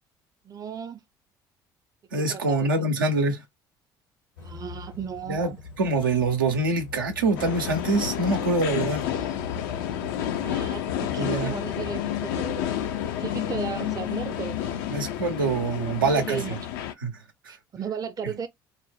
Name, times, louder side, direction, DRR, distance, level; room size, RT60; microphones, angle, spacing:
voice 1, 0.4-1.0 2.1-2.9 4.4-5.6 10.4-14.9 16.0-16.6 17.5-18.5, right 6 dB, 35° right, 0.5 m, -36 dB
voice 2, 2.1-3.4 5.3-5.5 5.8-9.1 11.2-11.5 14.9-16.4 17.0-17.2, right 3 dB, 85° right, 0.5 m, -25 dB
sound 1, 4.4-15.3, left 3 dB, 85° left, 1.1 m, -42 dB
sound 2, 7.4-16.9, left 11 dB, 70° left, 0.4 m, -30 dB
2.4 x 2.0 x 3.3 m
figure-of-eight pair, 55°, 11 cm